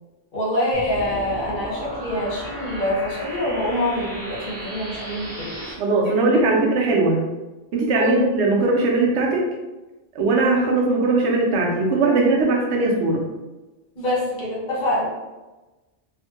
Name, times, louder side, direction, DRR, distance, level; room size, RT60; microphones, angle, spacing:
voice 1, 0.3-5.7 7.9-8.2 14.0-15.1, left 1 dB, 45° left, -6 dB, 1.0 m, -25 dB
sound 1, 0.7-5.7, right 1 dB, 40° right, 0.6 m, -35 dB
voice 2, 5.8-7.2 7.7-9.4 10.1-13.2, right 3 dB, 70° right, -1 dB, 0.8 m, -19 dB
2.5 x 2.1 x 2.7 m, 1.1 s
omnidirectional pair, 1.2 m